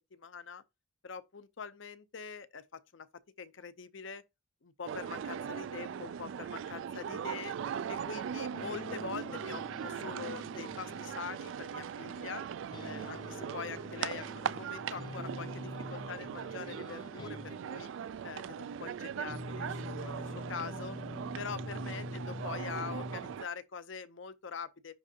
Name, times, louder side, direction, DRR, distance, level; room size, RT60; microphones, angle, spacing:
voice 1, 0.1-0.6 1.0-3.1 3.4-4.2 4.6-7.5 7.9-12.4 12.8-17.9 18.2-21.0 21.4-24.9, left 6 dB, 70° left, 0.6 m, -44 dB
sound 1, 4.9-23.5, right 8 dB, 75° right, 0.3 m, -40 dB
sound 2, 8.5-11.4 12.7-17.9 19.3-23.4, left 2 dB, 20° left, 0.3 m, -45 dB
10.5 x 3.7 x 2.8 m
head